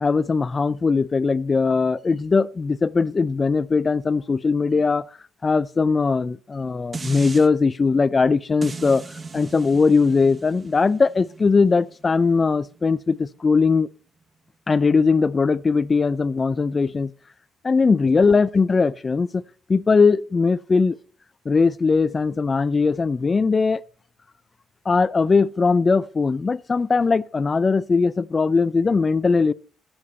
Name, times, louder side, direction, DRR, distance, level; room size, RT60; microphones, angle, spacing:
voice 1, 0.0-5.1 5.4-9.0 9.3-13.9 14.7-17.1 17.6-19.4 19.7-21.0 21.5-23.8 24.9-29.5, left 4 dB, 30° left, 0.4 m, -20 dB
sound 1, 6.9-7.5 8.6-13.8 14.2-14.3, right 4 dB, 35° right, 0.9 m, -38 dB
14.0 x 8.8 x 4.2 m
cardioid pair, 90°, 0 cm